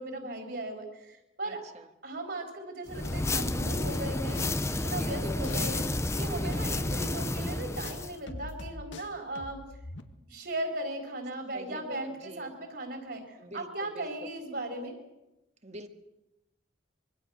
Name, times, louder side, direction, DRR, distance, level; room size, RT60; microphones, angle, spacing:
voice 1, 0.0-1.7 2.0-4.5 4.7-5.8 6.2-9.6 10.3-15.0, right 1 dB, 55° right, 2 dB, 4.4 m, -37 dB
voice 2, 1.4-1.9 4.8-5.7 6.3-7.1 11.5-12.5 13.4-14.3 15.6-15.9, right 1 dB, 35° right, 6 dB, 1.8 m, -45 dB
sound 1, 2.9-8.2, left 2 dB, 15° left, 0.7 m, -31 dB
sound 2, 3.0-5.2 5.4-10.0, left 1 dB, 70° left, 1.7 m, -43 dB
25.0 x 24.5 x 6.5 m, 0.95 s
head